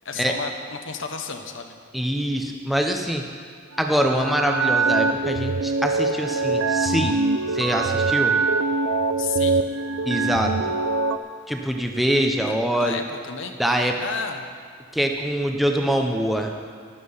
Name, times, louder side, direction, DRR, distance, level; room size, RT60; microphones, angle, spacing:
voice 1, 0.0-1.7 9.2-9.6 12.4-13.5 14.0-14.5, left 5 dB, 65° left, 5 dB, 1.0 m, -32 dB
voice 2, 1.9-3.3 3.8-7.2 7.5-8.4 10.1-10.7 11.5-13.0 13.6-14.0 14.9-16.5, equal, ahead, 2 dB, 0.7 m, -24 dB
sound 1, 3.8-11.2, right 3 dB, 85° right, 0.6 m, -23 dB
12.5 x 11.5 x 5.6 m, 2.1 s
head